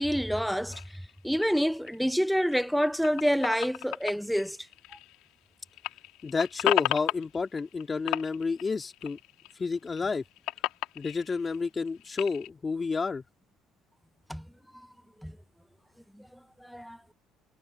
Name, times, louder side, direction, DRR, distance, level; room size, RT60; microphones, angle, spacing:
voice 1, 0.0-4.6 14.3-14.5 14.7-14.9 15.2-15.4 16.1-16.3 16.6-17.0, equal, ahead, 0.5 m, -28 dB
sound 1, 0.7-5.5 5.7-9.5 9.9-12.5, left 17 dB, 80° left, 1.8 m, -34 dB
voice 2, 6.2-9.2 9.6-10.2 10.9-13.2, left 4 dB, 30° left, 2.8 m, -30 dB
supercardioid pair, 80°, 0 cm